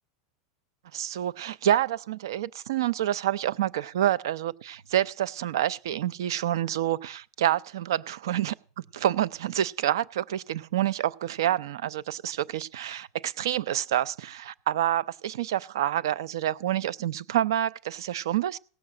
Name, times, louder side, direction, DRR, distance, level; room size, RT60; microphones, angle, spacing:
voice 1, 0.9-18.6, right 12 dB, 80° right, 0.6 m, -28 dB
17.0 x 5.9 x 7.6 m
supercardioid pair, 175°, 2 cm